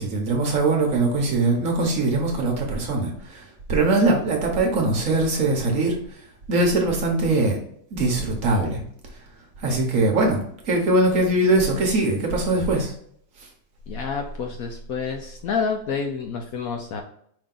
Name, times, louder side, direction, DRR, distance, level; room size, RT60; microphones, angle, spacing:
voice 1, 0.0-5.9 6.5-7.6 7.9-8.8 9.6-10.4 10.6-12.9, right 2 dB, 55° right, 1 dB, 1.2 m, -21 dB
voice 2, 13.9-17.0, left 5 dB, 70° left, 4 dB, 0.9 m, -28 dB
5.0 x 2.8 x 3.7 m, 0.66 s
omnidirectional pair, 1.8 m